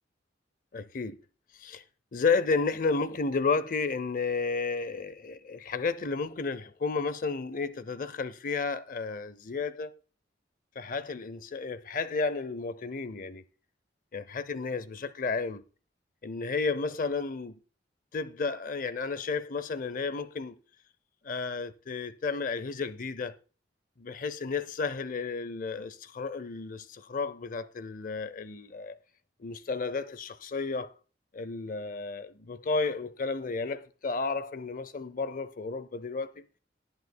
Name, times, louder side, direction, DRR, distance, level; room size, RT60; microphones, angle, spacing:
voice 1, 0.7-1.2 1.6-1.8 2.1-9.9 10.8-13.4 14.1-15.6 16.2-17.6 18.1-20.6 21.2-23.3 24.0-29.0 29.4-30.9 31.3-36.4, left 4 dB, 45° left, 0.5 m, -32 dB
18.5 x 7.9 x 2.2 m
head